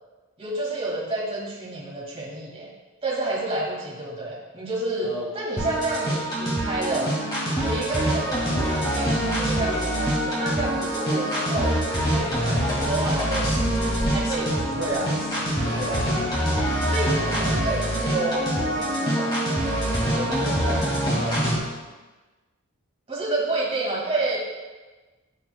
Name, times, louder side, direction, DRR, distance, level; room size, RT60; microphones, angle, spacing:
voice 1, 0.4-2.7 3.0-7.1 7.6-13.9 14.1-14.8 16.2-16.3 16.8-19.4 23.1-24.4, right 2 dB, 25° right, -5 dB, 2.0 m, -30 dB
sound 1, 5.6-21.6, equal, 20° left, 1.9 m, -25 dB
sound 2, 9.5-16.3, left 1 dB, 65° left, 0.9 m, -39 dB
voice 2, 14.6-15.2 15.7-16.1 20.0-21.7, right 1 dB, 80° right, -4 dB, 1.3 m, -32 dB
13.5 x 4.6 x 2.2 m, 1.2 s
head